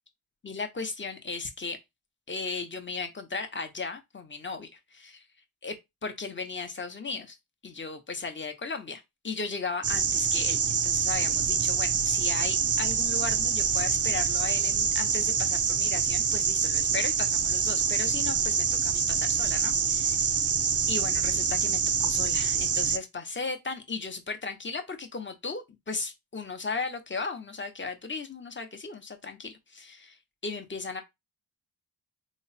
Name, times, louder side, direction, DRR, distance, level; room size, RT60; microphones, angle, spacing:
voice 1, 0.4-1.8 2.3-5.2 5.6-7.4 7.6-20.3 20.9-30.2 30.4-31.0, left 4 dB, 25° left, 0.8 m, -36 dB
sound 1, 9.8-23.0, right 6 dB, 35° right, 0.4 m, -26 dB
3.1 x 2.1 x 4.0 m
cardioid pair, 60°, 47 cm